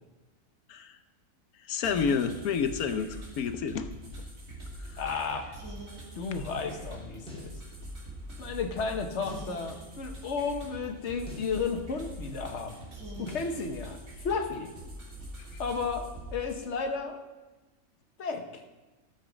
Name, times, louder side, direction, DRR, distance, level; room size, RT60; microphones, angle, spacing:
voice 1, 1.7-3.9 4.8-5.0 15.5-15.6, left 6 dB, 80° left, 9 dB, 1.2 m, -30 dB
sound 1, 1.8-16.6, right 1 dB, 65° right, 2.9 m, -44 dB
voice 2, 5.0-5.5 6.1-7.5 8.4-12.8 13.2-14.0 14.2-14.7 15.6-17.2 18.2-18.6, left 5 dB, 55° left, 5 dB, 1.4 m, -33 dB
sound 2, 7.3-7.6 9.3-9.6 11.3-11.6 13.3-13.6, left 2 dB, 5° left, 3.0 m, -44 dB
13.5 x 7.3 x 5.1 m, 1.1 s
omnidirectional pair, 1.5 m